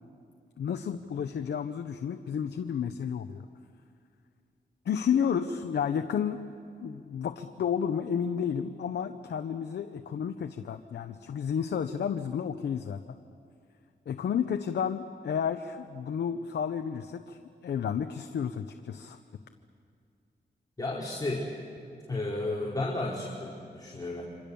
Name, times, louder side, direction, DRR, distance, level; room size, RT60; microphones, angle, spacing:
voice 1, 0.6-3.5 4.9-6.4 6.8-13.0 14.1-19.2, left 7 dB, 90° left, 7 dB, 0.9 m, -31 dB
voice 2, 20.8-21.5 22.1-24.2, left 2 dB, 20° left, -4 dB, 4.4 m, -33 dB
27.5 x 26.0 x 7.1 m, 2.4 s
cardioid pair, 70°, 17 cm